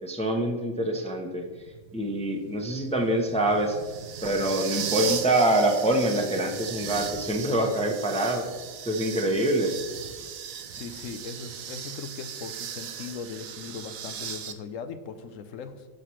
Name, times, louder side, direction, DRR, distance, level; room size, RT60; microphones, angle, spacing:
voice 1, 0.0-1.4 1.9-3.8 4.2-8.5 8.9-9.7, right 1 dB, 5° left, 2 dB, 0.7 m, -25 dB
sound 1, 1.4-14.5, right 8 dB, 80° right, 1.1 m, -37 dB
voice 2, 10.7-15.9, left 5 dB, 70° left, 10 dB, 1.0 m, -39 dB
16.5 x 5.8 x 3.2 m, 1.4 s
omnidirectional pair, 1.4 m